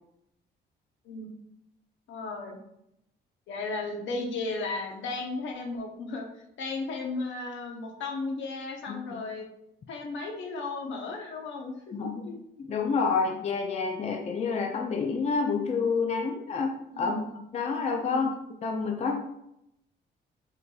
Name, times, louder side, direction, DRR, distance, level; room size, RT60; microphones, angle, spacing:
voice 1, 2.1-2.6 3.5-6.2 6.6-9.5 9.9-11.9 12.2-12.4 16.9-17.3 18.1-18.3, left 3 dB, 70° left, 2 dB, 0.7 m, -35 dB
voice 2, 11.9-12.2 12.6-17.2 17.5-18.3 18.6-19.2, left 5 dB, 35° left, 2 dB, 0.4 m, -28 dB
4.0 x 2.6 x 2.3 m, 0.81 s
cardioid pair, 90°, 20 cm